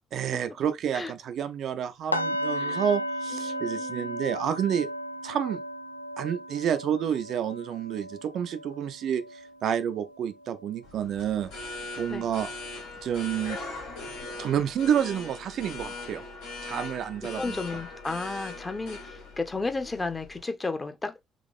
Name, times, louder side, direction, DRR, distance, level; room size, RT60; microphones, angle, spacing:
voice 1, 0.1-4.9 5.2-5.6 6.2-11.5 12.0-12.5 13.0-13.6 14.4-16.2 16.6-17.6, right 9 dB, 50° right, 0.4 m, -29 dB
sound 1, 2.1-12.0 12.4-12.7 13.1-13.2, equal, 85° left, 0.4 m, -36 dB
voice 2, 3.3-4.1 12.1-12.3 17.4-21.1, left 3 dB, 20° left, 0.9 m, -33 dB
sound 2, 10.8-20.4, left 3 dB, 70° left, 1.6 m, -40 dB
3.7 x 3.0 x 3.6 m
figure-of-eight pair, 45°, 0 cm